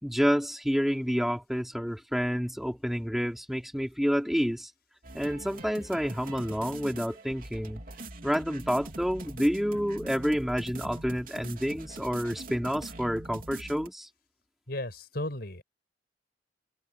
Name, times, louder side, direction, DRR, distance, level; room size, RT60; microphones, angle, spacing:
voice 1, 0.0-4.7 5.1-7.8 8.2-14.1, equal, ahead, 4.0 m, -29 dB
sound 1, 5.0-13.9, right 2 dB, 50° right, 3.5 m, -43 dB
voice 2, 14.7-15.6, left 1 dB, 60° left, 6.1 m, -35 dB
head